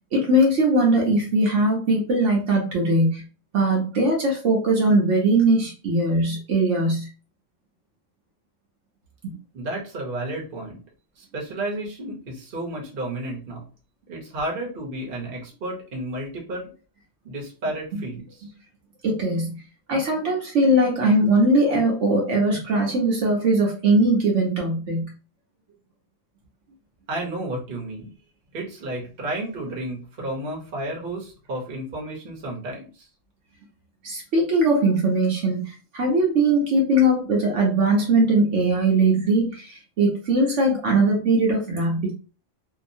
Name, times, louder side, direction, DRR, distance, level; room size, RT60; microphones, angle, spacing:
voice 1, 0.1-3.2 3.5-7.1 9.2-9.3 17.9-18.0 19.0-19.5 19.9-25.1 34.0-42.1, right 1 dB, 70° right, -2 dB, 1.1 m, -20 dB
voice 2, 9.5-10.8 11.2-13.6 14.1-16.7 17.2-18.5 27.1-28.1 28.5-33.1, right 1 dB, 50° right, -2 dB, 1.0 m, -32 dB
2.7 x 2.3 x 2.6 m, 0.35 s
omnidirectional pair, 1.3 m